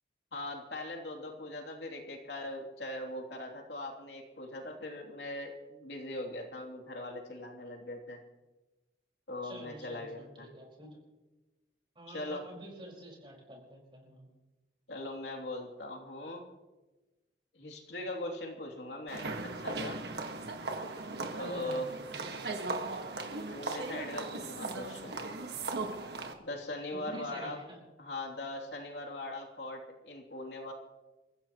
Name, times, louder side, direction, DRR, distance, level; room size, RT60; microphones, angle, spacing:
voice 1, 0.3-8.2 9.3-10.5 12.1-12.4 14.9-16.4 17.5-20.0 21.4-21.9 23.5-25.2 26.4-27.6 28.0-30.7, left 1 dB, 75° left, 1 dB, 3.0 m, -40 dB
voice 2, 9.4-11.0 11.9-14.3 21.3-23.1 26.9-27.8, right 1 dB, 30° right, -1 dB, 5.1 m, -49 dB
sound 1, 19.1-26.3, right 3 dB, 65° right, 1.7 m, -38 dB
29.0 x 15.0 x 3.1 m, 1.1 s
head